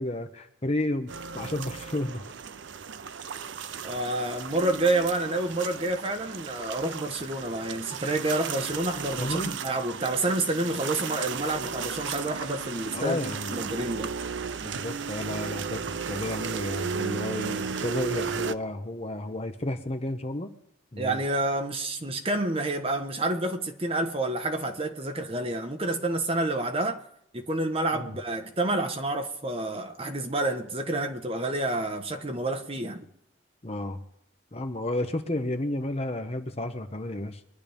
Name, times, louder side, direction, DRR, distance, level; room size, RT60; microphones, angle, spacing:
voice 1, 0.0-2.3 9.2-9.5 12.9-13.7 14.6-20.5 20.9-21.2 27.9-28.2 33.6-34.0 34.5-37.4, left 1 dB, 30° left, 0.9 m, -32 dB
sound 1, 1.1-18.5, right 6 dB, 65° right, 0.5 m, -35 dB
voice 2, 3.8-14.1 21.0-27.0 27.3-33.1, right 2 dB, 30° right, 1.1 m, -29 dB
23.5 x 11.0 x 3.5 m
head